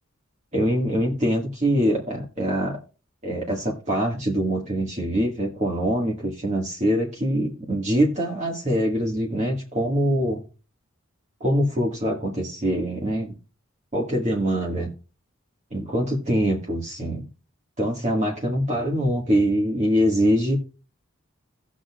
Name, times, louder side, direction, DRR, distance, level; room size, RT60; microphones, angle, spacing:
voice 1, 0.5-2.8 3.2-10.4 11.4-13.3 13.9-14.9 15.7-17.3 17.8-20.6, equal, 35° right, -2 dB, 1.8 m, -24 dB
18.0 x 6.4 x 2.4 m, 0.34 s
head